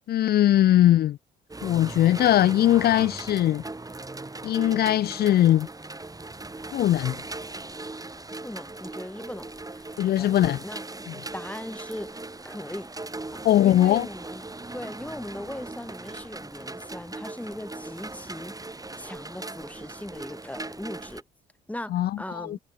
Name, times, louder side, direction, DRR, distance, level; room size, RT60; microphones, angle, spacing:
voice 1, 0.1-1.2 1.6-3.6 4.4-5.7 6.7-7.2 10.0-10.6 11.1-11.2 13.4-14.1 21.9-22.6, left 12 dB, 55° left, 0.7 m, -20 dB
sound 1, 1.5-21.2, right 2 dB, 20° right, 6.8 m, -39 dB
voice 2, 8.4-10.3 10.6-10.8 11.3-12.2 12.4-12.9 13.3-14.5 14.7-21.2 21.7-22.6, left 1 dB, 5° left, 7.1 m, -39 dB
hypercardioid pair, 50°, 19 cm